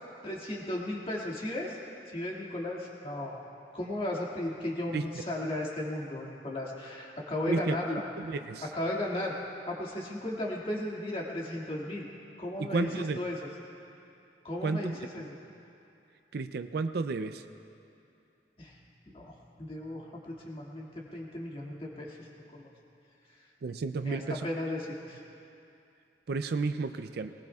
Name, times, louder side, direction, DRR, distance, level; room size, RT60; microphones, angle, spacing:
voice 1, 0.2-1.8 2.1-3.3 3.7-8.0 8.6-9.3 9.7-12.1 12.4-12.9 13.2-13.5 14.4-15.4 18.6-18.8 19.1-22.7 24.0-25.2, left 1 dB, 35° left, -3 dB, 2.1 m, -35 dB
voice 2, 8.2-8.6 12.6-13.2 14.6-14.8 16.3-17.4 23.6-24.5 26.3-27.3, right 4 dB, 60° right, 10 dB, 0.4 m, -32 dB
20.5 x 19.5 x 2.4 m, 2.6 s
head